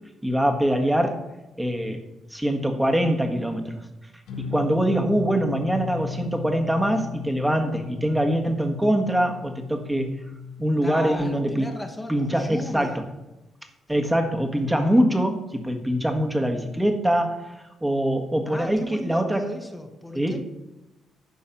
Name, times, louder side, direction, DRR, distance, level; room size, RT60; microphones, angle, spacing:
voice 1, 0.2-1.2 1.6-2.0 2.3-3.8 4.4-10.1 10.6-11.7 12.1-13.0 13.9-17.4 17.8-19.5 20.1-20.5, right 1 dB, 5° right, 5 dB, 1.6 m, -23 dB
sound 1, 4.3-11.1, left 6 dB, 90° left, 1.7 m, -36 dB
voice 2, 10.8-13.0 18.5-20.5, left 1 dB, 10° left, 4 dB, 1.3 m, -35 dB
11.5 x 4.6 x 7.2 m, 1.0 s
cardioid pair, 90°, 0 cm